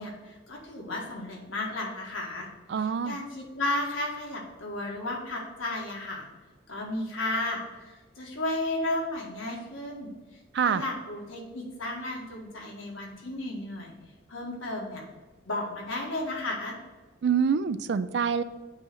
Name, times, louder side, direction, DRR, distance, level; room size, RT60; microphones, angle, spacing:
voice 1, 0.0-2.5 2.7-6.3 6.7-10.1 10.6-13.9 14.3-15.0 15.4-16.8, left 2 dB, 85° left, -1 dB, 1.6 m, -33 dB
voice 2, 2.7-3.2 10.5-10.8 17.2-18.4, right 6 dB, 60° right, 14 dB, 0.3 m, -26 dB
7.6 x 3.1 x 6.2 m, 1.2 s
head